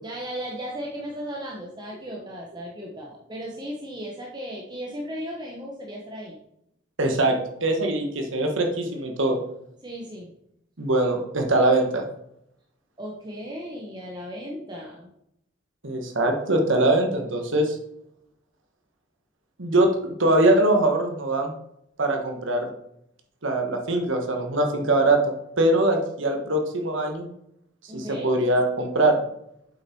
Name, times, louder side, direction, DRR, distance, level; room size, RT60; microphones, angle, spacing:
voice 1, 0.0-6.4 9.8-10.3 13.0-15.1 27.9-28.3, equal, 20° right, -3 dB, 1.0 m, -36 dB
voice 2, 7.0-7.3 7.6-9.4 10.8-12.0 15.8-17.8 19.6-21.5 22.0-22.7 23.4-25.2 25.6-27.3 27.9-29.2, right 2 dB, 80° right, 4 dB, 1.5 m, -22 dB
7.8 x 5.8 x 4.5 m, 0.77 s
head